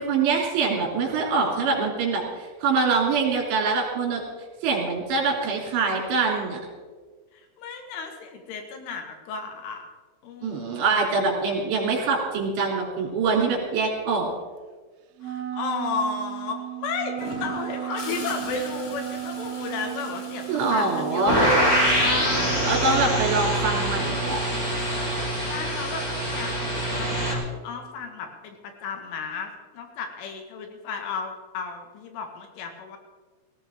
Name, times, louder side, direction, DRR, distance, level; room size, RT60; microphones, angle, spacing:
voice 1, 0.0-4.2 4.6-6.6 10.4-14.3 20.5-21.4 22.6-24.4, right 4 dB, 65° right, 0 dB, 5.0 m, -24 dB
voice 2, 7.3-9.8 10.2-11.0 15.2-22.8 25.4-33.0, left 4 dB, 80° left, 4 dB, 4.1 m, -34 dB
Wind instrument woodwind instrument, 15.2-23.3, right 14 dB, 90° right, 3.2 m, -34 dB
Gurgling / Toilet flush, 17.2-22.9 24.9-25.2, left 2 dB, 60° left, 4.2 m, -40 dB
sound 1, 21.3-27.3, equal, 20° left, 3.3 m, -24 dB
18.5 x 15.5 x 3.6 m, 1.4 s
omnidirectional pair, 5.6 m